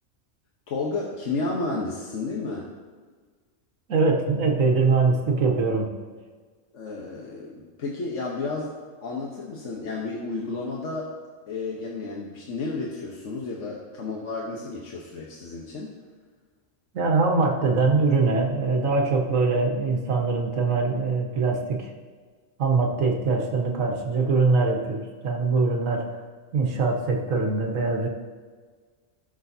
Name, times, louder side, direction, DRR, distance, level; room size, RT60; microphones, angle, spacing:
voice 1, 0.7-2.7 6.7-11.1 11.5-15.9, left 3 dB, 65° left, -3 dB, 1.4 m, -32 dB
voice 2, 3.9-5.9 16.9-21.9 22.6-26.0 26.5-28.1, right 4 dB, 85° right, 0 dB, 1.7 m, -23 dB
17.5 x 6.4 x 2.8 m, 1.5 s
omnidirectional pair, 1.3 m